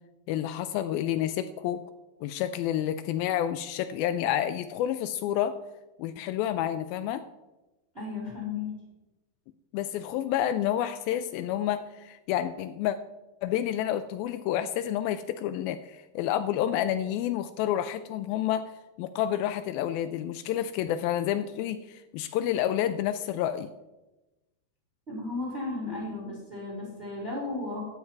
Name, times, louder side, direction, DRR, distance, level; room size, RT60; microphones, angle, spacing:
voice 1, 0.3-1.8 2.2-5.6 6.0-7.2 9.7-13.0 13.4-18.7 19.0-23.7, left 11 dB, 90° left, 10 dB, 2.1 m, -29 dB
voice 2, 7.9-8.7 25.1-27.8, left 3 dB, 15° right, -3 dB, 3.9 m, -34 dB
14.5 x 9.3 x 4.6 m, 1.1 s
omnidirectional pair, 4.8 m